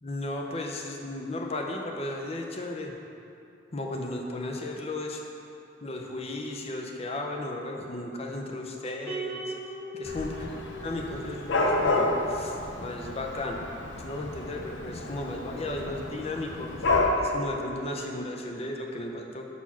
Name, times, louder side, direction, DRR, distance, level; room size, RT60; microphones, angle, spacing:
voice 1, 0.0-2.9 3.7-5.2 5.8-9.5 9.9-13.7 14.0-16.9 17.2-19.5, left 1 dB, 35° left, 1 dB, 0.6 m, -35 dB
sound 1, 9.1-11.5, right 2 dB, 15° right, 1.0 m, -38 dB
Dog / Cat, 10.0-17.1, left 2 dB, 75° left, 0.7 m, -30 dB
6.0 x 4.2 x 5.6 m, 2.7 s
head